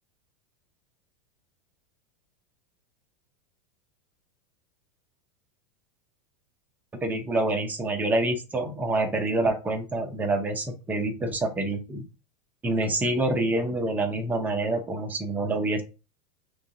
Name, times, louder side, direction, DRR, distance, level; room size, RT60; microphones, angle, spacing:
voice 1, 7.0-12.0 12.6-15.8, right 2 dB, 10° right, 5 dB, 0.5 m, -27 dB
5.4 x 3.5 x 2.6 m, 0.31 s
supercardioid pair, 165°, 21 cm